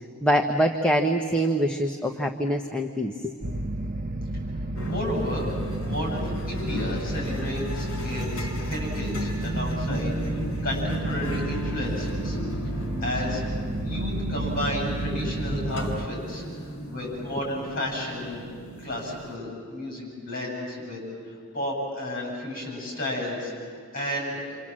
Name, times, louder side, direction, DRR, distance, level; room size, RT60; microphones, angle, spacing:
voice 1, 0.2-3.3, equal, 5° left, 1 dB, 1.0 m, -24 dB
sound 1, 3.4-16.1, right 1 dB, 35° right, 0.6 m, -31 dB
sound 2, 4.8-19.4, right 1 dB, 60° left, 2.9 m, -35 dB
voice 2, 4.8-12.4 12.7-13.4 13.8-18.5 18.8-21.0 21.5-24.6, left 1 dB, 40° left, -1 dB, 7.7 m, -32 dB
29.0 x 26.5 x 7.6 m, 2.2 s
head